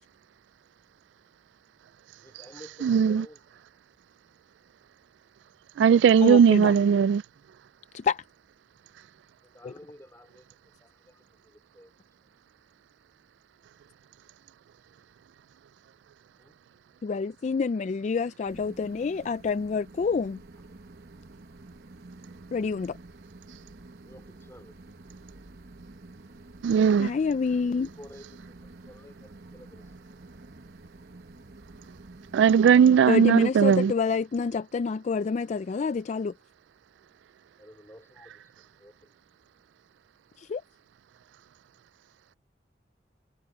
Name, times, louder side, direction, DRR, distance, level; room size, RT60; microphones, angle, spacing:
voice 1, 2.2-3.6 9.4-11.9 12.2-12.3 16.4-16.6 17.1-17.3 24.0-24.8 27.6-30.2 37.6-39.2, equal, 15° left, 3.4 m, -52 dB
voice 2, 2.8-3.2 5.8-7.2 26.6-27.1 32.3-33.9, right 7 dB, 80° right, 0.3 m, -18 dB
voice 3, 6.2-6.7 7.9-8.2 9.6-9.7 17.0-20.4 22.5-23.0 27.0-27.9 33.1-36.3 40.4-40.6, left 5 dB, 40° left, 0.3 m, -28 dB
sound 1, 18.5-32.7, right 2 dB, 55° right, 1.1 m, -49 dB
head